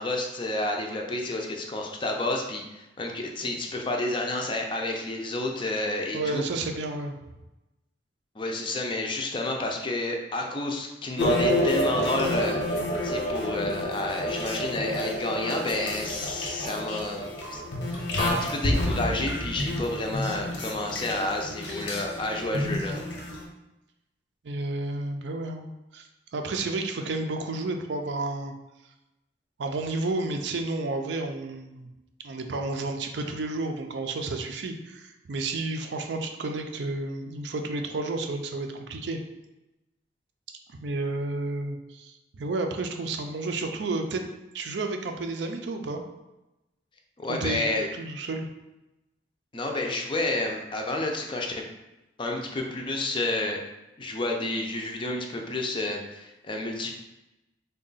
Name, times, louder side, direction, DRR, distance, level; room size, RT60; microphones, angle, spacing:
voice 1, 0.0-6.5 8.4-12.6 13.0-17.6 17.9-23.0 47.2-47.9 49.5-51.6 52.2-53.6 54.0-56.9, left 2 dB, 30° left, 2 dB, 0.4 m, -30 dB
voice 2, 6.1-7.2 24.4-25.7 25.9-28.5 29.6-31.9 32.2-39.2 40.7-44.3 44.5-46.0 47.3-47.7 47.9-48.5, right 2 dB, 75° right, 5 dB, 0.4 m, -31 dB
sound 1, 11.2-23.4, left 1 dB, 85° left, 0.9 m, -29 dB
3.7 x 2.2 x 3.9 m, 0.97 s
head